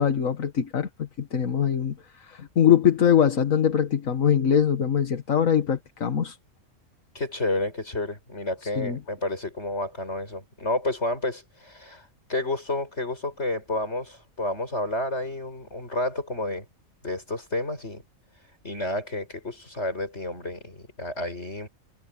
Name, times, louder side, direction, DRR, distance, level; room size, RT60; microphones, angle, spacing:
voice 1, 0.0-6.4 8.8-9.0, left 8 dB, 85° left, 1.9 m, -22 dB
voice 2, 7.1-16.7 17.0-18.0 18.6-21.7, left 2 dB, 55° left, 7.8 m, -30 dB
omnidirectional pair, 1.4 m